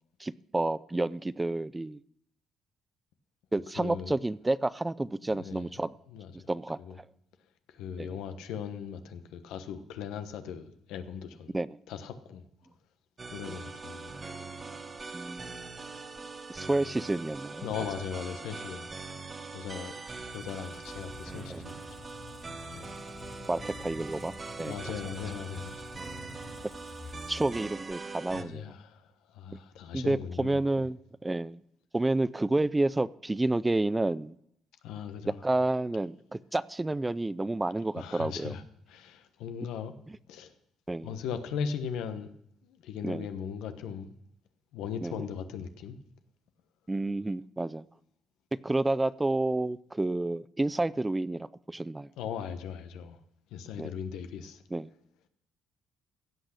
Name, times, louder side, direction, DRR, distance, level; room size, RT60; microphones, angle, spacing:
voice 1, 0.2-2.0 3.5-5.9 6.5-6.8 8.0-8.2 11.5-11.8 13.5-13.6 15.1-15.6 16.5-17.7 21.5-21.6 23.5-24.7 27.3-28.7 29.5-29.6 29.9-31.6 31.9-34.3 35.4-38.5 40.1-40.2 40.9-41.1 43.0-43.3 45.0-45.1 46.9-47.8 48.6-52.1 53.8-53.9 54.7-54.9, right 2 dB, 15° right, 0.4 m, -30 dB
voice 2, 3.8-4.2 5.2-5.7 6.1-6.5 6.8-7.0 7.7-11.6 11.9-12.4 13.3-14.2 17.6-18.9 19.5-21.8 22.7-22.9 24.6-25.9 28.3-30.6 34.8-35.4 38.0-38.6 38.9-39.9 40.3-40.5 41.0-42.3 42.6-44.1 44.7-46.0 52.2-53.2 53.5-54.6, left 7 dB, 85° left, 1.1 m, -38 dB
sound 1, 13.2-28.4, right 3 dB, 30° right, 1.1 m, -42 dB
Squeak, 20.1-27.9, left 4 dB, 45° left, 3.5 m, -49 dB
16.5 x 6.0 x 6.5 m
cardioid pair, 90°, 0 cm